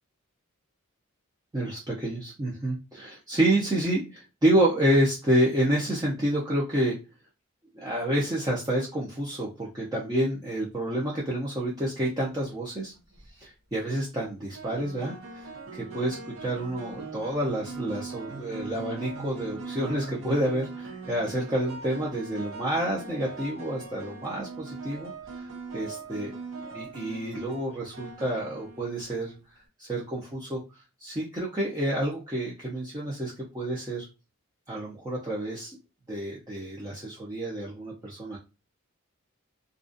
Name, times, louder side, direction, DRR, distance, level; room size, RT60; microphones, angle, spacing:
voice 1, 1.5-7.0 7.7-12.9 13.4-25.5 25.7-26.3 26.7-29.3 29.8-30.6 31.0-34.1 34.7-35.8 36.1-38.4, right 1 dB, 20° right, -5 dB, 0.5 m, -29 dB
sound 1, 12.9-13.3 14.5-29.4, right 3 dB, 65° right, 0.6 m, -41 dB
2.4 x 2.2 x 2.5 m, 0.29 s
head